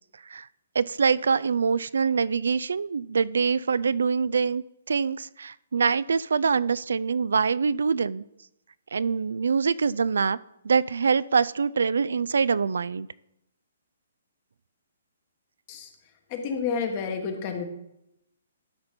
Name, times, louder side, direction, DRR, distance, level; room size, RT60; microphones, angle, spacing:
voice 1, 0.7-8.2 8.9-10.4 10.6-13.1, right 5 dB, 85° right, 19 dB, 0.3 m, -24 dB
voice 2, 16.3-17.6, left 5 dB, 30° left, 5 dB, 1.3 m, -30 dB
12.0 x 4.2 x 5.2 m, 0.82 s
hypercardioid pair, 160°, 0 cm